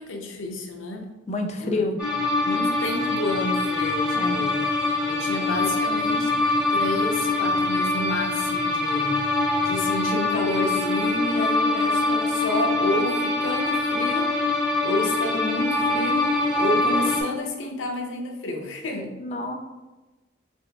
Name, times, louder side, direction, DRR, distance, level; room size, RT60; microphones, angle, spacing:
voice 1, 0.0-1.1 1.6-1.9 2.4-4.6 5.1-6.3 6.7-9.2 9.6-14.4 14.8-16.3 16.6-19.1, left 1 dB, 85° left, 3 dB, 0.6 m, -30 dB
voice 2, 1.3-2.0 4.1-4.4 19.2-19.6, left 2 dB, 35° left, 5 dB, 0.3 m, -28 dB
sound 1, 2.0-17.2, left 2 dB, 5° right, 0.6 m, -24 dB
4.2 x 3.1 x 2.2 m, 1.1 s
head